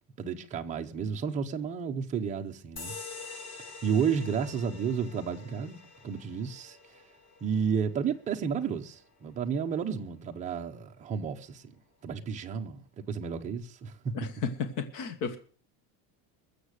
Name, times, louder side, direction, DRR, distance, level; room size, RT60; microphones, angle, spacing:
voice 1, 0.2-3.5 3.8-6.8 7.4-11.8 12.0-14.1, right 6 dB, 15° right, 0.7 m, -32 dB
sound 1, 2.8-9.8, left 4 dB, 70° left, 6.1 m, -47 dB
voice 2, 14.1-15.4, left 5 dB, 45° left, 1.5 m, -33 dB
21.5 x 7.4 x 6.5 m
cardioid pair, 180°, 45 cm